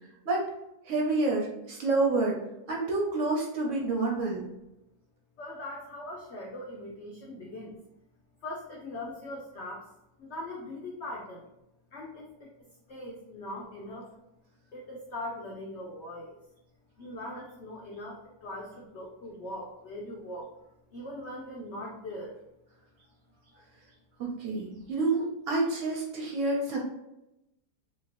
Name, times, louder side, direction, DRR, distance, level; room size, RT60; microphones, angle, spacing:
voice 1, 0.9-2.4 2.7-4.4 24.2-26.8, right 3 dB, 60° right, -1 dB, 0.8 m, -28 dB
voice 2, 5.4-7.8 8.4-9.9 10.2-11.5 11.9-14.1 14.7-16.4 17.0-20.5 20.9-22.3 23.5-23.6, left 1 dB, 75° left, -2 dB, 0.6 m, -41 dB
3.0 x 2.8 x 2.9 m, 0.88 s
omnidirectional pair, 1.8 m